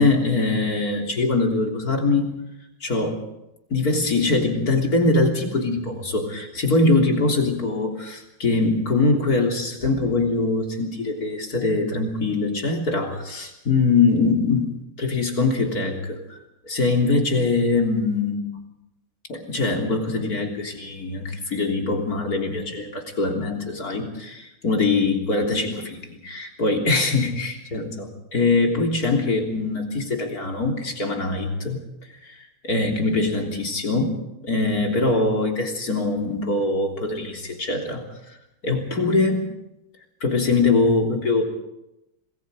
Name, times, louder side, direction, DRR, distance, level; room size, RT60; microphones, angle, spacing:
voice 1, 0.0-2.3 2.8-3.2 3.7-14.7 15.0-16.4 16.6-18.5 19.3-31.8 32.2-32.4 32.6-34.2 34.4-38.0 38.6-39.5 40.2-41.4, left 3 dB, 45° left, 2 dB, 3.9 m, -22 dB
27.0 x 20.5 x 5.1 m, 0.89 s
omnidirectional pair, 2.3 m